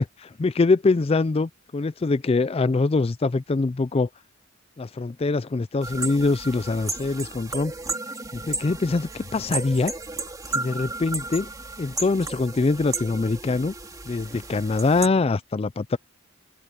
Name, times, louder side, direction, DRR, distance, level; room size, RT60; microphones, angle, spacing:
voice 1, 0.0-4.1 4.8-7.7 8.3-9.9 10.5-11.5 11.8-13.7 14.1-16.0, left 3 dB, 30° left, 0.4 m, -23 dB
sound 1, 5.8-15.1, right 3 dB, 15° right, 3.2 m, -34 dB
open air
head